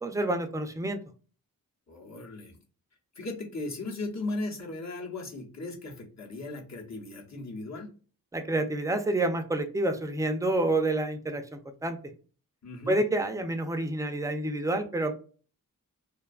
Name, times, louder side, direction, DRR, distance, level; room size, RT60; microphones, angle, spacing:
voice 1, 0.0-1.0 8.3-12.0 12.9-15.1, right 2 dB, 10° right, 6 dB, 0.4 m, -28 dB
voice 2, 1.9-2.6 3.2-7.9 12.6-13.0, left 2 dB, 50° left, -1 dB, 0.9 m, -37 dB
2.5 x 2.3 x 2.3 m, 0.37 s
cardioid pair, 50°, 36 cm